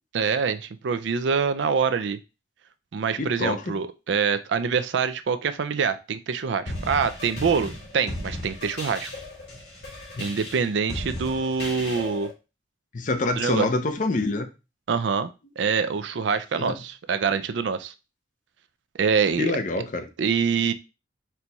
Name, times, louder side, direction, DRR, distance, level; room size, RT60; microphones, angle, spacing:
voice 1, 0.1-2.2 2.9-9.1 10.2-12.3 13.4-13.7 14.9-15.3 15.6-17.9 18.9-19.5 20.2-20.7, right 6 dB, 75° right, 11 dB, 0.4 m, -25 dB
voice 2, 3.2-3.7 10.2-10.3 12.9-14.5 16.6-16.8 19.4-20.1, left 2 dB, 45° left, 8 dB, 0.6 m, -26 dB
sound 1, 6.7-12.3, left 1 dB, 70° left, 2.2 m, -36 dB
4.4 x 2.3 x 3.9 m, 0.28 s
head